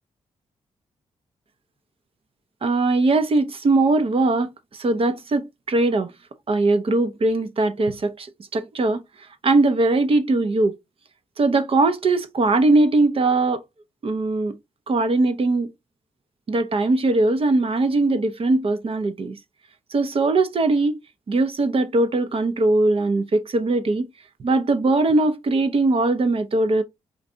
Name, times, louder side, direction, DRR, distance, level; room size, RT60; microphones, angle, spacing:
voice 1, 2.6-6.1 6.5-8.3 8.5-9.0 9.4-10.8 11.4-13.6 14.0-14.6 14.9-15.7 16.5-19.4 19.9-21.0 21.3-24.1 24.4-26.8, right 2 dB, 50° right, 0.7 m, -20 dB
3.9 x 2.6 x 3.3 m
cardioid pair, 60°, 13 cm